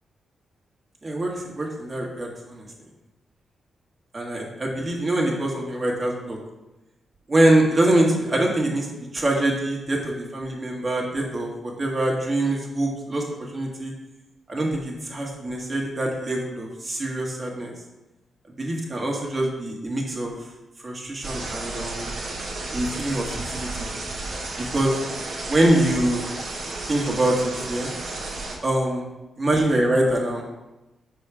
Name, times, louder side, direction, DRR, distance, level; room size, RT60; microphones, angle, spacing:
voice 1, 1.0-2.6 4.1-6.4 7.3-8.9 9.1-13.2 13.5-13.9 14.5-17.7 18.6-20.4 20.8-22.1 22.7-23.9 24.6-25.0 25.5-26.2 26.9-27.9 28.6-29.0 29.4-30.6, right 1 dB, 40° right, -1 dB, 1.7 m, -24 dB
sound 1, 21.2-28.6, right 2 dB, 70° right, 1.3 m, -32 dB
5.7 x 4.3 x 4.8 m, 1.0 s
cardioid pair, 70°, 0 cm